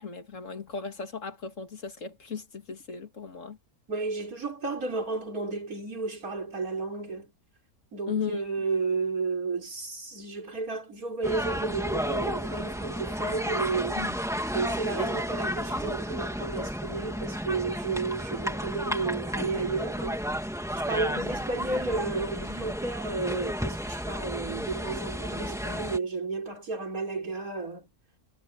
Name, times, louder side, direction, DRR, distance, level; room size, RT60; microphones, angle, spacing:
voice 1, 0.0-3.6 8.1-8.4 14.0-14.2 21.1-21.3, left 6 dB, 55° left, 2.8 m, -36 dB
voice 2, 3.9-7.3 7.9-14.0 14.5-20.3 20.8-27.9, right 3 dB, 75° right, 5.1 m, -32 dB
sound 1, 11.2-26.0, equal, ahead, 2.4 m, -32 dB
omnidirectional pair, 1.5 m